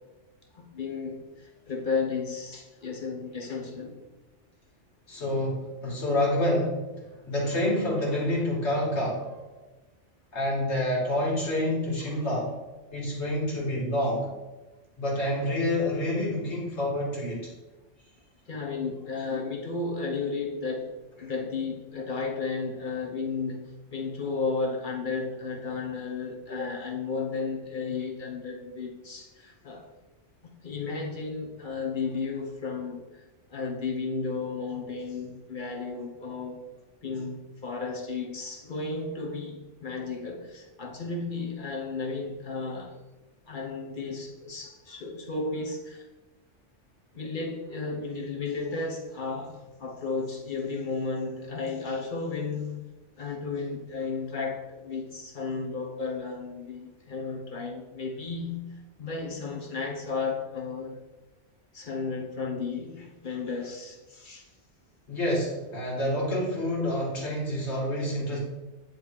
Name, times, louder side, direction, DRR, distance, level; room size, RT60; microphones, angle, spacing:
voice 1, 0.5-4.0 5.8-6.0 9.5-9.6 12.8-12.9 18.5-20.9 21.2-23.6 23.9-29.9 30.4-33.0 33.5-36.6 37.0-43.0 43.5-46.1 47.1-52.8 53.2-61.0 61.7-64.5, left 4 dB, 45° left, 0 dB, 1.2 m, -33 dB
voice 2, 5.1-6.8 7.3-9.3 10.3-12.5 12.9-14.3 15.0-17.5 65.1-68.4, left 1 dB, 65° left, -4 dB, 2.4 m, -28 dB
9.4 x 3.5 x 4.7 m, 1.1 s
omnidirectional pair, 1.2 m